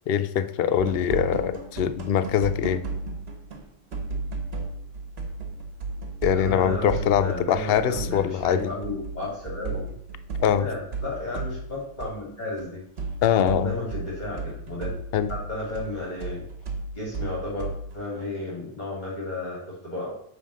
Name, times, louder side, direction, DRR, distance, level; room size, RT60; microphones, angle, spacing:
voice 1, 0.1-2.8 6.2-8.7 10.4-10.6 13.2-13.7 15.1-15.3, left 9 dB, 60° left, 12 dB, 0.7 m, -23 dB
sound 1, 0.8-3.7 3.9-12.1 12.4-18.0, right 3 dB, 55° right, 1.5 m, -35 dB
voice 2, 6.3-9.9 10.3-15.0 15.3-16.4 16.9-20.1, left 2 dB, 35° left, -5 dB, 2.6 m, -33 dB
9.2 x 3.6 x 6.3 m, 0.71 s
omnidirectional pair, 1.3 m